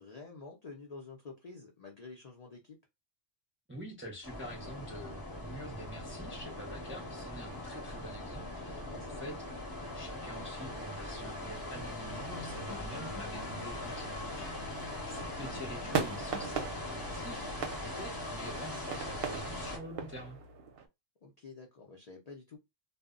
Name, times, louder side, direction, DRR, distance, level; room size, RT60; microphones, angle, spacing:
voice 1, 0.0-2.8 8.5-9.2 14.6-15.3 21.2-22.6, left 4 dB, 55° left, 0.4 m, -49 dB
voice 2, 3.7-9.4 9.9-20.4, equal, 15° right, 0.4 m, -46 dB
sound 1, 4.2-19.8, left 1 dB, 25° left, 0.7 m, -41 dB
sound 2, 11.1-20.7, left 3 dB, 70° left, 0.9 m, -50 dB
sound 3, 13.8-20.9, right 6 dB, 60° right, 0.7 m, -40 dB
2.0 x 2.0 x 3.6 m
omnidirectional pair, 1.2 m